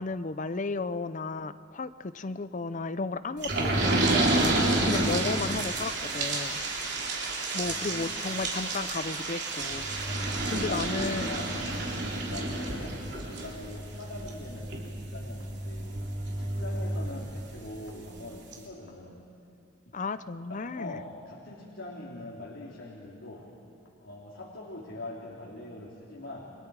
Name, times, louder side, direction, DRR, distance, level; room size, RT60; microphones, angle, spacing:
voice 1, 0.0-4.5 4.8-6.6 7.5-9.9 10.2-11.3 19.9-21.0, left 3 dB, 40° left, 13 dB, 0.6 m, -34 dB
sound 1, 3.4-17.7 18.2-18.3 18.5-18.6, right 2 dB, 60° right, 3.2 m, -30 dB
voice 2, 7.6-8.2 10.4-16.0 16.4-19.2 19.9-20.0 20.5-23.5 24.0-26.5, left 2 dB, 85° left, -4 dB, 2.9 m, -42 dB
29.5 x 25.0 x 4.8 m, 2.4 s
head